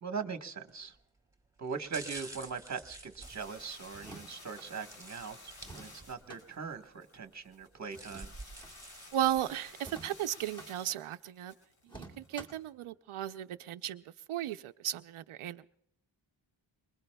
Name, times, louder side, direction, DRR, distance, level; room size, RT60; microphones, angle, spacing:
voice 1, 0.0-1.0 1.6-8.3, right 5 dB, 35° right, 6 dB, 1.2 m, -41 dB
sound 1, 0.7-1.0 1.6-4.2 4.9-6.3 6.7-6.8 7.6-9.8 10.3-10.4, right 2 dB, 5° right, 2.5 m, -49 dB
sound 2, 3.2-12.6, left 2 dB, 85° left, 5.9 m, -54 dB
sound 3, 3.9-4.7 5.6-6.4 7.9-8.8 9.8-10.7 11.9-12.7, right 2 dB, 10° left, 2.2 m, -50 dB
voice 2, 9.1-11.5 11.9-14.0 14.3-15.7, right 12 dB, 85° right, 9 dB, 0.6 m, -35 dB
27.0 x 21.0 x 2.2 m, 0.77 s
wide cardioid pair, 130°, 48 cm